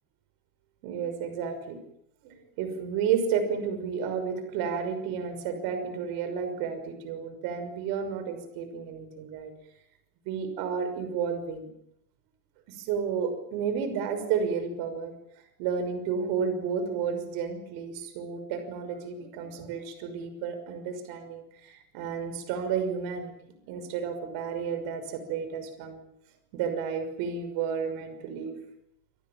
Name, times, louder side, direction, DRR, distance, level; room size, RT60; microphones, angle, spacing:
voice 1, 0.8-1.8 2.2-9.5 10.2-11.7 12.7-15.1 15.6-26.0 26.5-28.6, right 6 dB, 60° right, 8 dB, 6.1 m, -32 dB
28.5 x 22.0 x 7.5 m, 0.75 s
cardioid pair, 170°, 42 cm